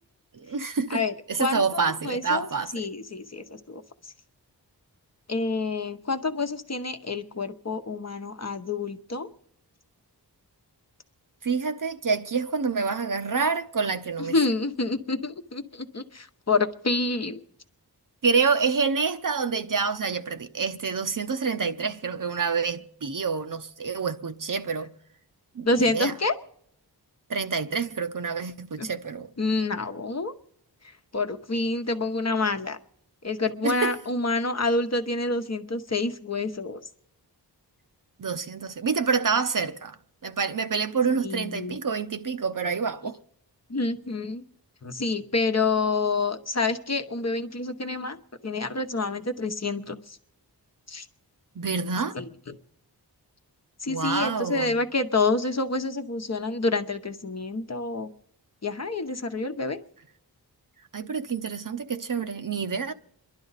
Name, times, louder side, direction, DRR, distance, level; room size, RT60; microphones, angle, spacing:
voice 1, 0.3-1.0 1.3-2.7 11.4-14.3 18.2-24.9 25.5-26.1 27.3-29.3 33.6-33.9 38.2-39.9 40.2-43.2 51.6-52.2 53.9-54.8 60.9-62.9, right 5 dB, 50° right, 0.8 m, -27 dB
voice 2, 0.9-4.1 5.3-9.3 14.2-17.4 25.6-26.3 28.8-28.9 29.4-30.3 30.8-32.8 33.2-36.8 41.2-41.8 43.7-44.4 44.8-48.2 48.4-50.2 50.9-51.1 52.1-52.5 53.8-58.1 58.6-59.8, left 3 dB, 40° left, 1.0 m, -28 dB
28.0 x 11.5 x 4.1 m
wide cardioid pair, 55°, 41 cm